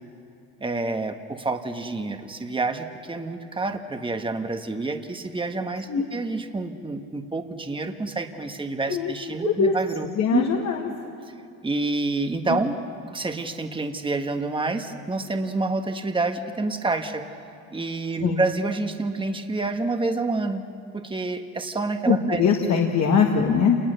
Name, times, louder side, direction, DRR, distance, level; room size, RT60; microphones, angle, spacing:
voice 1, 0.6-10.5 11.6-12.8 13.1-17.4 17.7-20.6 20.9-22.8, right 3 dB, 15° right, 6 dB, 1.5 m, -28 dB
voice 2, 10.1-10.9 12.5-12.6 18.2-18.4 22.1-23.8, left 6 dB, 50° left, 0 dB, 2.0 m, -21 dB
27.5 x 20.5 x 6.8 m, 2.6 s
supercardioid pair, 90°, 36 cm